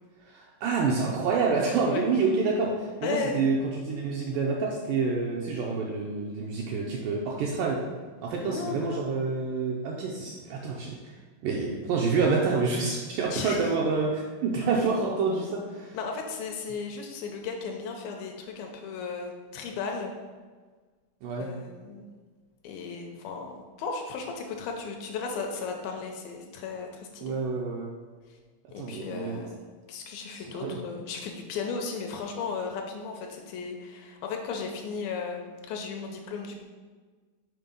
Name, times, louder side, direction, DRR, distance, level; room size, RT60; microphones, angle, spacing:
voice 1, 0.2-7.9 8.2-11.2 11.4-16.0 21.2-21.5 27.2-27.9 28.8-29.4 30.3-30.8, right 4 dB, 80° right, -2 dB, 1.9 m, -28 dB
voice 2, 3.0-3.4 8.4-9.0 13.3-13.7 15.9-20.1 21.4-22.1 22.6-27.4 28.3-28.4 28.7-29.6 29.9-36.6, left 5 dB, 80° left, 2 dB, 2.3 m, -35 dB
6.2 x 4.5 x 5.2 m, 1.4 s
omnidirectional pair, 4.4 m